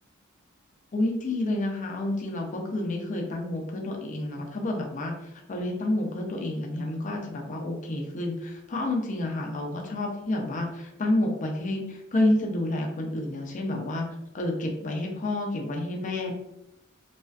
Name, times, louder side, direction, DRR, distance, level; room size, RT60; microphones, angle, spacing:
voice 1, 0.9-14.1 14.3-16.3, left 1 dB, 35° left, 1 dB, 0.4 m, -29 dB
2.4 x 2.3 x 2.3 m, 0.86 s
head